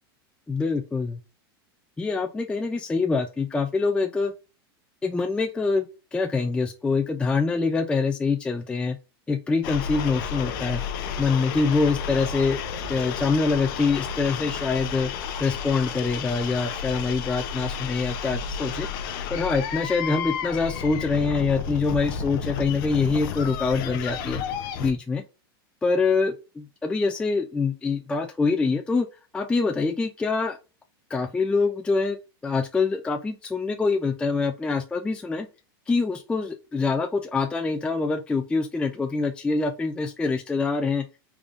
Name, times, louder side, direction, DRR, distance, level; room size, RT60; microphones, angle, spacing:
voice 1, 0.5-1.2 2.0-4.3 5.0-5.9 6.1-9.0 9.3-10.8 11.2-12.6 12.9-15.1 15.4-18.9 19.3-24.4 24.8-25.2 25.8-29.1 29.3-30.6 31.1-32.2 32.4-35.5 35.9-41.0, left 4 dB, 10° left, 4 dB, 0.3 m, -25 dB
sound 1, 9.6-24.9, left 7 dB, 60° left, 0.6 m, -32 dB
3.5 x 3.4 x 2.4 m, 0.31 s
supercardioid pair, 120°, 13 cm